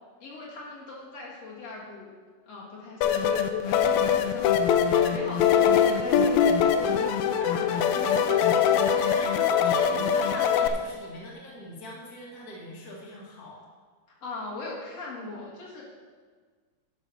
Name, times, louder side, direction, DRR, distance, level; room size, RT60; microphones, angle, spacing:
voice 1, 0.2-2.1 2.4-8.8 14.2-15.8, left 3 dB, 60° left, -5 dB, 2.9 m, -40 dB
sound 1, 3.0-10.7, left 8 dB, 85° left, 2.0 m, -23 dB
voice 2, 4.8-5.6 6.3-6.4 7.3-7.8 8.9-13.6, equal, 35° left, -4 dB, 2.3 m, -42 dB
12.0 x 6.3 x 5.7 m, 1.5 s
omnidirectional pair, 3.3 m